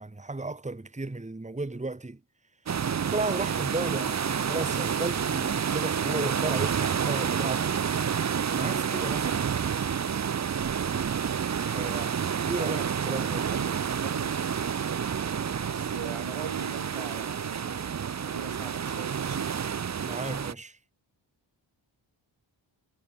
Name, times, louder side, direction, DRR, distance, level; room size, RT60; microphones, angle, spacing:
voice 1, 0.0-2.2 3.0-7.7 8.5-9.5 11.7-13.5 20.0-20.8, right 2 dB, 15° right, 1.4 m, -34 dB
sound 1, 2.7-20.5, right 7 dB, 35° right, 0.5 m, -29 dB
voice 2, 12.6-13.7 14.0-14.4 15.6-19.6, right 7 dB, 85° right, 2.2 m, -40 dB
wide cardioid pair, 80°, 48 cm